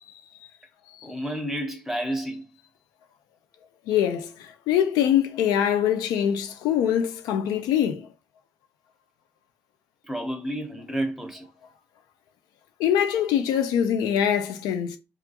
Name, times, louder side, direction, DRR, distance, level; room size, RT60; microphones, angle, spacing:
voice 1, 1.0-2.5 10.0-11.5, right 1 dB, 5° right, 0.9 m, -30 dB
voice 2, 3.9-8.1 12.8-15.0, left 9 dB, 85° left, 0.3 m, -23 dB
2.3 x 2.2 x 2.7 m
hypercardioid pair, 50°, 7 cm